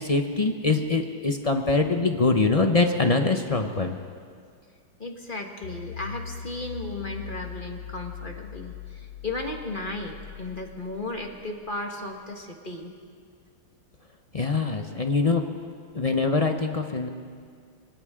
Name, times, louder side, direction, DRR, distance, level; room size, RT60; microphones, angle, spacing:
voice 1, 0.0-4.0 14.3-15.5 15.9-17.1, left 3 dB, 50° left, 4 dB, 0.4 m, -23 dB
voice 2, 5.0-12.9, left 2 dB, 25° left, 2 dB, 1.5 m, -35 dB
sound 1, 5.6-11.9, left 7 dB, 70° left, 1.4 m, -41 dB
28.5 x 24.5 x 3.7 m, 2.1 s
omnidirectional pair, 2.1 m